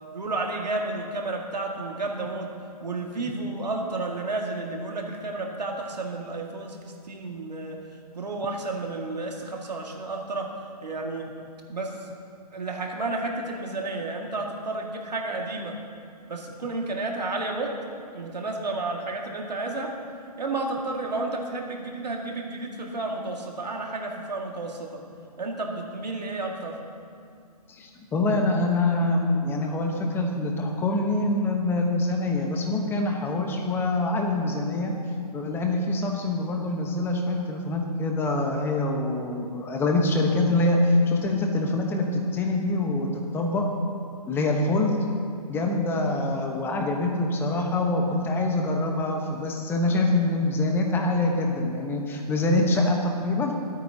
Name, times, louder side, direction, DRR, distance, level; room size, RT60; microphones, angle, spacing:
voice 1, 0.1-2.5 2.8-7.8 8.1-10.5 10.8-11.3 11.7-12.1 12.5-15.7 16.3-17.7 18.1-19.9 20.4-25.0 25.4-26.8, right 2 dB, 85° right, 0 dB, 2.1 m, -31 dB
voice 2, 27.7-34.9 35.3-43.6 44.3-45.0 45.5-53.5, left 2 dB, 10° left, 2 dB, 1.1 m, -25 dB
23.0 x 9.0 x 2.9 m, 2.3 s
hypercardioid pair, 145°, 21 cm